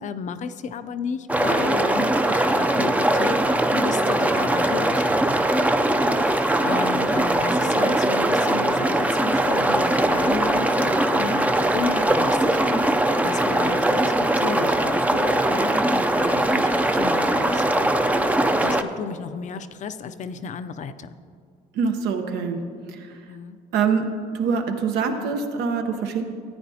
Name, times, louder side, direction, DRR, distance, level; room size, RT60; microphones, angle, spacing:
voice 1, 0.0-3.4 3.7-5.7 6.0-17.9 18.5-21.1 23.3-23.6, left 6 dB, 45° left, 11 dB, 0.5 m, -33 dB
sound 1, 1.3-18.8, right 1 dB, 10° right, 0.4 m, -21 dB
voice 2, 21.7-22.6 22.9-23.1 23.7-24.1 24.3-26.2, right 5 dB, 85° right, 5 dB, 1.0 m, -24 dB
14.0 x 9.2 x 2.8 m, 2.2 s
cardioid pair, 110°, 17 cm